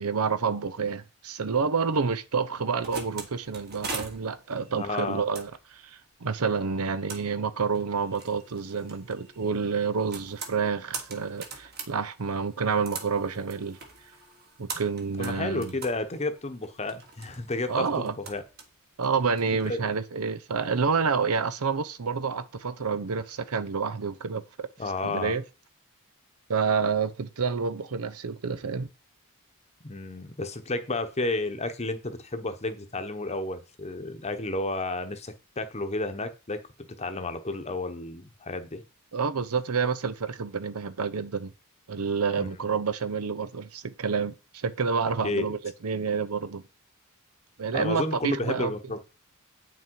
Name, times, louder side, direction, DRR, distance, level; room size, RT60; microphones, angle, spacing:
voice 1, 0.0-13.8 14.6-15.7 17.7-18.1 19.0-24.7 25.0-25.4 26.5-28.9 39.1-41.5 41.9-46.6 47.6-48.7, right 5 dB, 80° right, 0.7 m, -28 dB
sound 1, 2.8-19.7, right 4 dB, 45° right, 1.7 m, -43 dB
voice 2, 4.7-5.2 15.2-18.4 19.6-19.8 24.8-25.4 29.8-36.6 37.0-38.8 42.4-42.5 45.2-45.5 47.7-49.0, left 2 dB, 30° left, 1.0 m, -31 dB
8.7 x 6.3 x 4.6 m
head